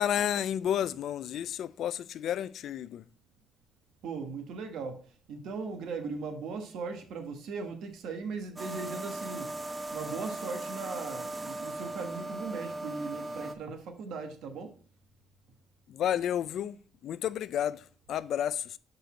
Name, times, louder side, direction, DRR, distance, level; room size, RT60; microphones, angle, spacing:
voice 1, 0.0-3.0 15.9-18.8, left 10 dB, 75° left, 0.4 m, -31 dB
voice 2, 4.0-5.0 5.3-9.6 9.9-14.8, right 4 dB, 80° right, 1.2 m, -38 dB
sound 1, 8.6-13.5, right 1 dB, 20° right, 0.8 m, -38 dB
6.2 x 5.3 x 4.2 m
cardioid pair, 90°, 0 cm